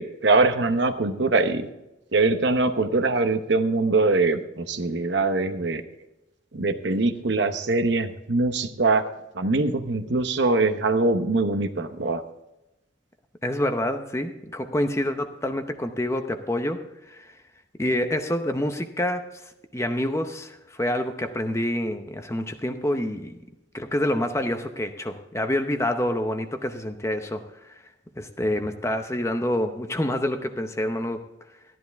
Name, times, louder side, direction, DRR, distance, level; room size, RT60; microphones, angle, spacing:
voice 1, 0.0-1.7 2.1-5.8 6.5-9.0 9.3-12.2, right 3 dB, 60° right, 8 dB, 0.9 m, -23 dB
voice 2, 13.4-17.3 17.8-23.4 23.7-27.7 28.2-31.2, left 1 dB, 15° left, 7 dB, 0.7 m, -27 dB
13.5 x 10.5 x 3.5 m, 0.94 s
head